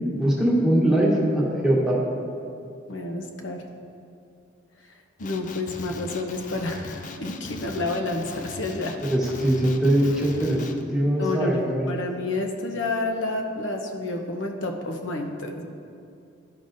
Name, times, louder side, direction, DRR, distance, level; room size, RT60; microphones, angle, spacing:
voice 1, 0.2-2.0 9.1-11.9, right 1 dB, 5° right, -6 dB, 1.2 m, -22 dB
voice 2, 2.9-3.7 5.2-9.0 11.2-15.6, left 2 dB, 85° left, 3 dB, 0.7 m, -29 dB
Male speech man speaking, 5.2-10.8, left 4 dB, 40° left, 0.4 m, -39 dB
12.5 x 5.2 x 2.6 m, 2.5 s
head